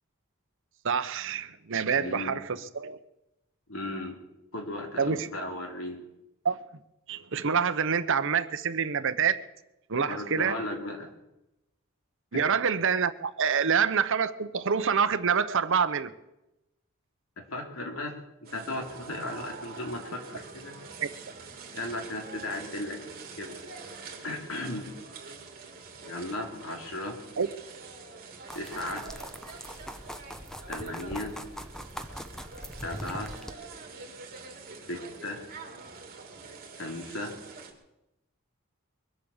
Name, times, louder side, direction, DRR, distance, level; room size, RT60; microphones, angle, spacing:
voice 1, 0.8-3.0 5.0-5.3 6.4-6.6 7.1-9.4 9.9-10.6 12.3-16.1 21.0-21.1 27.4-27.5, right 6 dB, 65° right, 0.9 m, -26 dB
voice 2, 1.9-2.4 3.7-4.2 4.5-6.0 9.9-11.1 12.3-12.5 17.4-18.1 18.4-20.8 21.7-23.0 23.4-23.6 24.2-24.9 26.0-27.2 28.5-29.1 30.7-31.3 32.8-33.3 34.9-35.4 36.8-37.3, left 1 dB, 70° left, 3.2 m, -36 dB
sound 1, 18.4-37.7, right 4 dB, 45° right, 2.8 m, -45 dB
sound 2, 28.5-33.5, equal, 5° left, 0.8 m, -41 dB
22.5 x 8.5 x 7.2 m
head